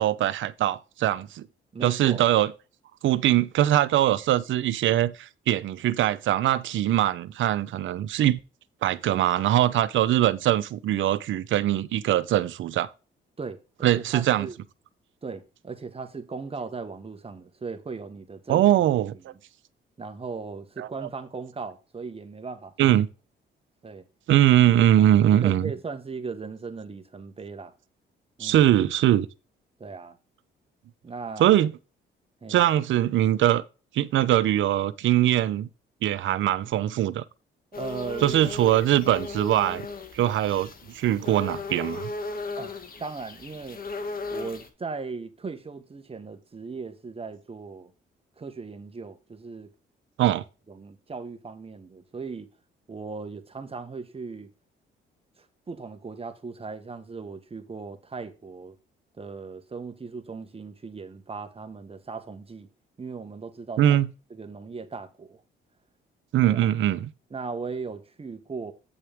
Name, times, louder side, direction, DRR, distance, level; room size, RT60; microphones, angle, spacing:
voice 1, 0.0-1.5 1.8-2.5 3.0-8.4 8.8-12.9 13.8-14.5 18.5-19.3 20.8-21.1 22.8-23.1 24.3-25.7 28.4-29.3 31.4-31.7 32.5-33.6 33.9-35.7 36.0-37.2 38.2-39.9 40.1-42.1 50.2-50.4 63.8-64.1 66.3-67.1, right 12 dB, 75° right, 0.8 m, -22 dB
voice 2, 1.7-2.2 13.4-14.6 15.2-18.6 19.3-19.4 20.0-22.9 23.8-24.0 25.4-27.7 28.4-28.7 29.8-30.2 31.0-31.5 32.4-32.7 37.8-38.4 42.6-42.7 43.0-43.8 44.3-47.9 48.4-49.7 50.7-52.5 52.9-54.5 55.4-58.8 59.2-62.7 63.0-64.0 64.3-65.4 66.4-66.7 67.3-68.7, right 4 dB, 30° right, 1.5 m, -38 dB
sound 1, 37.7-44.7, left 3 dB, 45° left, 1.8 m, -36 dB
9.0 x 6.3 x 3.6 m
cardioid pair, 90°, 20 cm